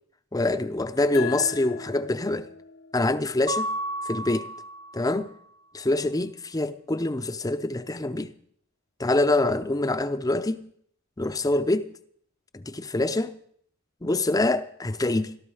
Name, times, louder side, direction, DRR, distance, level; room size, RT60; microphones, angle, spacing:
voice 1, 0.3-2.5 2.9-3.7 4.1-4.5 4.9-5.3 5.7-8.3 9.0-10.7 11.2-11.9 12.5-13.4 14.0-15.4, left 2 dB, 15° left, 0.6 m, -25 dB
sound 1, 1.1-4.3, left 6 dB, 70° left, 1.4 m, -39 dB
Mallet percussion, 3.5-5.3, right 1 dB, 55° right, 0.8 m, -32 dB
17.5 x 13.5 x 4.9 m
head